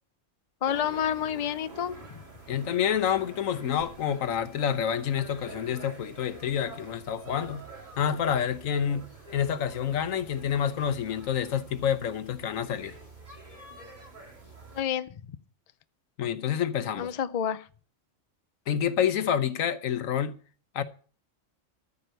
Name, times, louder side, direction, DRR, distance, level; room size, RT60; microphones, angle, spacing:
voice 1, 0.6-2.0 14.7-15.1 17.0-17.7, left 9 dB, 45° left, 0.5 m, -29 dB
sound 1, 0.6-14.8, right 3 dB, 35° right, 3.1 m, -47 dB
voice 2, 2.5-7.7 8.0-13.0 16.2-17.1 18.7-20.4 20.7-20.8, left 8 dB, 80° left, 1.3 m, -28 dB
14.0 x 5.5 x 7.9 m
omnidirectional pair, 1.4 m